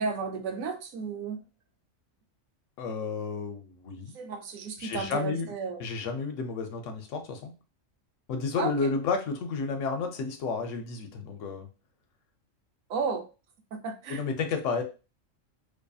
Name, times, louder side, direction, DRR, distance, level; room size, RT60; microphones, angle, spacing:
voice 1, 0.0-1.4 4.1-5.8 8.6-8.9 12.9-13.2 13.7-14.2, right 5 dB, 85° right, 5 dB, 1.0 m, -33 dB
voice 2, 2.8-4.2 4.8-5.5 5.8-7.5 8.3-11.7 14.1-14.8, left 4 dB, 70° left, 5 dB, 0.9 m, -31 dB
2.6 x 2.6 x 2.3 m, 0.32 s
omnidirectional pair, 1.4 m